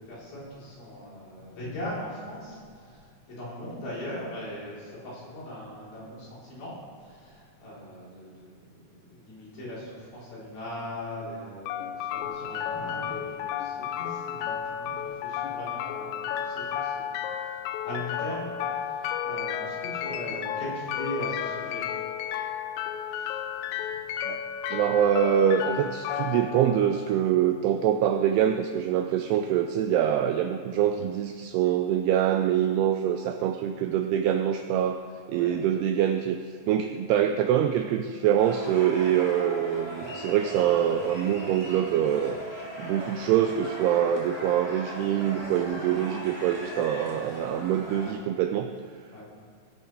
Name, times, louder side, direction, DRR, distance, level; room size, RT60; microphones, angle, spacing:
voice 1, 0.0-3.0 3.3-17.6 17.8-21.8 23.1-23.4 35.3-35.5 49.1-49.2, left 1 dB, 55° left, -8 dB, 5.6 m, -40 dB
sound 1, 11.7-27.7, left 8 dB, 85° left, 2.9 m, -33 dB
voice 2, 24.7-35.0 35.3-36.4 36.7-42.4 42.8-48.7, right 10 dB, 85° right, 6 dB, 2.3 m, -25 dB
sound 2, 38.4-48.1, equal, 15° left, 1.1 m, -39 dB
18.0 x 10.5 x 3.4 m, 2.2 s
omnidirectional pair, 5.1 m